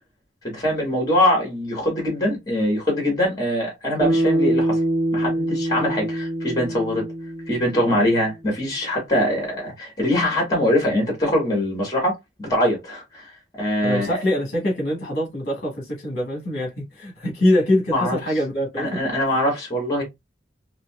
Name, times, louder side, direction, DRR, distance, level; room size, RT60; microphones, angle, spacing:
voice 1, 0.5-4.8 5.1-7.1 7.5-13.3 13.6-14.2 17.9-18.2 18.8-20.0, left 1 dB, 25° left, 1.9 m, -22 dB
Bass guitar, 4.0-8.4, right 1 dB, 50° right, 1.0 m, -24 dB
voice 2, 13.8-19.0, left 1 dB, 50° left, 1.4 m, -23 dB
4.1 x 2.7 x 2.4 m
head